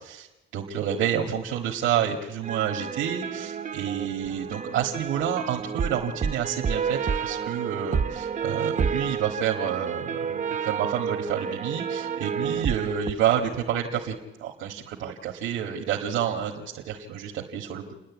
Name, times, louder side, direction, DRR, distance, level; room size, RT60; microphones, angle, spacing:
voice 1, 0.5-17.9, right 9 dB, 90° right, 0 dB, 1.8 m, -29 dB
sound 1, 2.4-13.1, right 6 dB, 40° right, 0.8 m, -30 dB
29.5 x 10.5 x 8.6 m, 1.1 s
cardioid pair, 90°, 20 cm